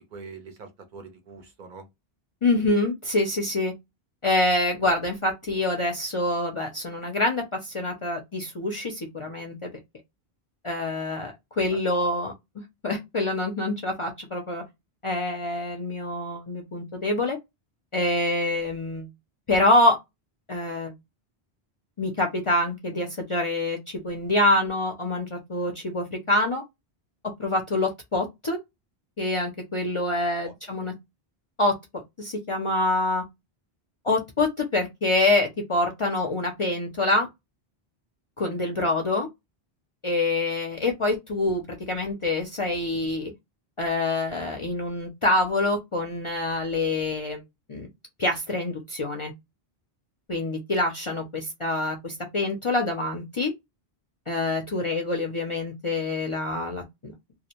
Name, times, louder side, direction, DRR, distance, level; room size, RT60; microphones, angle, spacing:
voice 1, 0.1-1.9 11.7-12.1 30.4-30.9, right 4 dB, 60° right, 0.6 m, -44 dB
voice 2, 2.4-3.7 4.2-9.7 10.6-14.6 15.0-17.4 17.9-19.1 19.5-20.0 20.5-20.9 22.0-26.6 27.4-28.6 29.2-30.9 31.6-31.8 32.2-33.2 34.0-37.3 38.4-39.3 40.0-43.3 43.8-47.4 47.7-47.9 48.2-49.3 50.3-53.5 54.3-57.1, left 2 dB, 45° left, 0.4 m, -26 dB
2.4 x 2.1 x 2.8 m
omnidirectional pair, 1.0 m